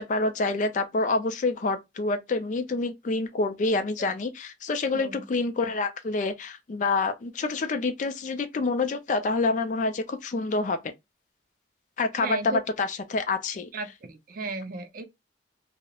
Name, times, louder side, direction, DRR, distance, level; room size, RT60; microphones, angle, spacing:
voice 1, 0.0-10.9 12.0-13.7, left 3 dB, 45° left, 0.4 m, -27 dB
voice 2, 12.1-12.6 13.7-15.0, right 3 dB, 50° right, 0.4 m, -35 dB
2.3 x 2.0 x 2.8 m
head